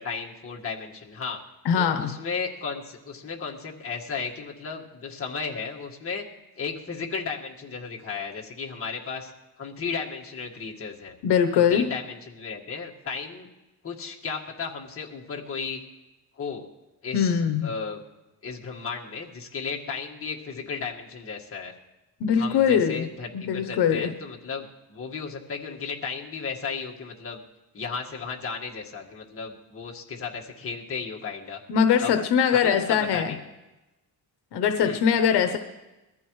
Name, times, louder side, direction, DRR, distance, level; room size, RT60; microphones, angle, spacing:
voice 1, 0.0-1.4 1.8-6.2 6.6-9.3 9.6-11.1 11.5-13.5 13.8-15.8 16.4-16.7 17.0-18.0 18.4-21.7 22.4-27.4 27.7-31.6 32.0-32.1 32.5-33.4 34.8-35.0, left 5 dB, 35° left, -1 dB, 1.8 m, -34 dB
voice 2, 1.6-2.1 11.2-11.9 17.1-17.7 22.2-23.1 23.3-24.1 31.7-33.3 34.5-35.6, left 7 dB, 80° left, 7 dB, 1.0 m, -22 dB
22.0 x 14.5 x 3.2 m, 1.0 s
cardioid pair, 135°, 40 cm